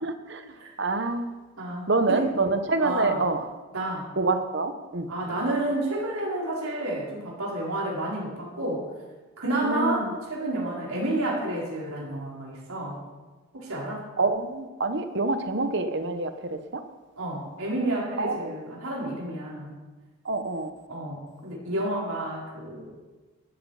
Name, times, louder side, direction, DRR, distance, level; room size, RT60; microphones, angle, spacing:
voice 1, 0.0-0.4 0.8-1.4 1.9-3.4 4.2-5.1 9.6-10.1 14.2-16.3 18.2-18.7 20.2-20.7, right 3 dB, 55° right, 8 dB, 1.2 m, -26 dB
voice 2, 1.6-2.3 2.8-3.2 3.7-4.1 5.1-8.9 9.4-13.0 13.5-14.0 17.2-19.8 20.9-23.0, right 1 dB, 85° right, -4 dB, 4.7 m, -30 dB
13.5 x 13.0 x 5.0 m, 1.2 s
head